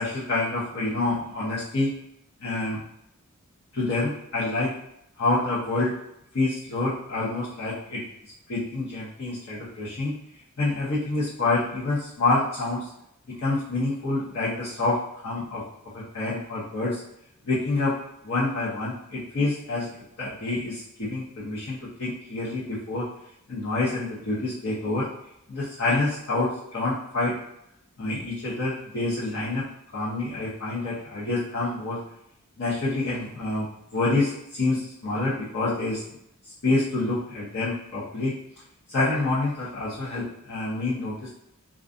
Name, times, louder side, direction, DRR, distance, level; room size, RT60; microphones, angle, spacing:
voice 1, 0.0-1.9 2.4-2.8 3.7-4.7 5.2-5.9 6.3-8.0 8.5-10.1 10.6-12.9 13.3-15.0 15.2-15.6 15.9-17.0 17.4-17.9 18.2-19.9 20.2-23.1 23.5-25.1 25.5-27.3 28.0-29.7 29.9-32.0 32.6-36.0 36.6-38.4 38.9-41.3, left 2 dB, 65° left, -9 dB, 0.8 m, -27 dB
2.5 x 2.3 x 2.5 m, 0.78 s
head